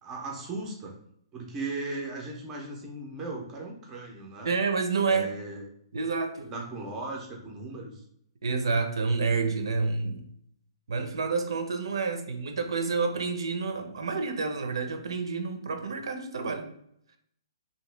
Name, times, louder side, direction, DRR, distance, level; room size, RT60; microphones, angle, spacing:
voice 1, 0.0-0.9 1.3-4.5 5.0-5.6 6.5-8.0, right 2 dB, 10° right, -1 dB, 0.4 m, -37 dB
voice 2, 4.4-5.3 5.9-6.5 8.4-10.3 10.9-16.7, right 4 dB, 75° right, 6 dB, 0.5 m, -29 dB
2.8 x 2.6 x 3.2 m, 0.71 s
hypercardioid pair, 180°, 3 cm